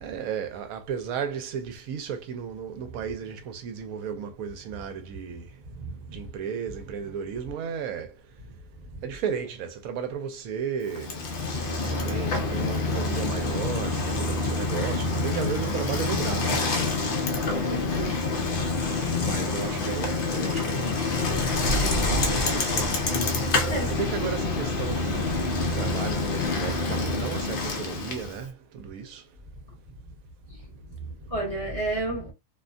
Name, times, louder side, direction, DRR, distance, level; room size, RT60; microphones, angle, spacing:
voice 1, 0.0-5.6 6.0-8.2 9.0-11.3 11.6-16.7 19.2-23.2 23.9-29.2, right 7 dB, 70° right, 1.0 m, -34 dB
voice 2, 5.7-6.3 17.3-18.2 23.7-23.9 30.5-30.7 31.0-32.3, right 2 dB, 25° right, 0.9 m, -32 dB
Bicycle, 10.9-28.4, left 3 dB, 85° left, 0.4 m, -27 dB
2.7 x 2.2 x 2.5 m
omnidirectional pair, 1.6 m